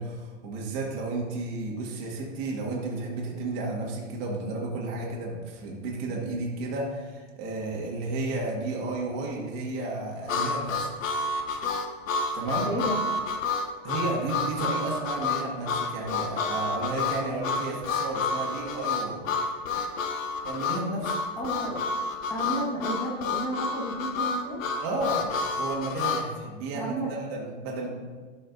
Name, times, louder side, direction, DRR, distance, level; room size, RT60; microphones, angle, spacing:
voice 1, 0.0-11.2 12.3-12.7 13.8-19.2 20.4-21.2 24.8-27.9, right 2 dB, 45° right, -2 dB, 1.9 m, -32 dB
Harmonica, 10.3-26.3, left 4 dB, 85° left, 0.9 m, -29 dB
voice 2, 12.6-13.0 21.4-22.0 22.3-24.6 26.7-27.1, right 1 dB, 10° left, -4 dB, 1.4 m, -32 dB
12.0 x 5.1 x 2.7 m, 1.5 s
hypercardioid pair, 130°, 39 cm